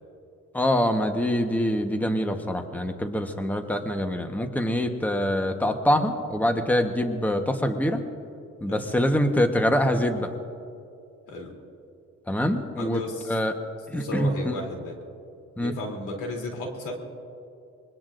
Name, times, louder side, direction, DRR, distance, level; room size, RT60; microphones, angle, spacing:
voice 1, 0.5-8.0 8.6-10.3 12.3-13.0 13.3-13.5 13.9-14.5 15.6-15.7, equal, 5° left, 5 dB, 1.2 m, -24 dB
voice 2, 12.8-13.3 13.9-15.0 15.6-16.9, left 2 dB, 85° left, 1 dB, 3.2 m, -34 dB
25.5 x 22.0 x 2.6 m, 2.6 s
cardioid pair, 90°, 30 cm